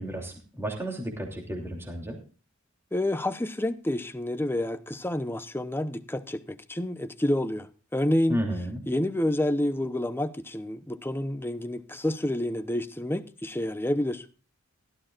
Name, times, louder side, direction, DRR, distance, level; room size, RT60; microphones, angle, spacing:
voice 1, 0.0-2.2 8.3-8.8, equal, 10° right, 2.9 m, -32 dB
voice 2, 2.9-8.4 8.9-14.2, left 1 dB, 10° left, 0.8 m, -29 dB
16.5 x 13.0 x 2.5 m
head